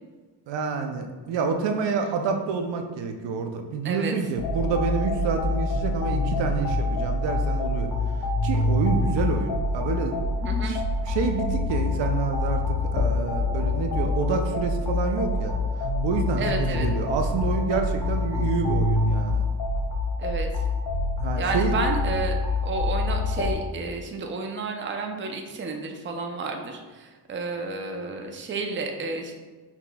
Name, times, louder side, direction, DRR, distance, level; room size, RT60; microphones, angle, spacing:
voice 1, 0.5-7.9 8.4-10.2 10.7-10.8 11.1-15.5 16.0-19.4 21.2-21.7, right 5 dB, 75° right, 5 dB, 0.5 m, -28 dB
voice 2, 3.8-4.2 10.4-10.8 16.4-16.9 20.2-20.6 21.4-22.3 22.6-29.3, right 3 dB, 30° right, 3 dB, 0.5 m, -31 dB
sound 1, 4.4-23.5, left 2 dB, 55° left, 1.0 m, -26 dB
5.7 x 2.9 x 2.2 m, 1.3 s
cardioid pair, 85°, 43 cm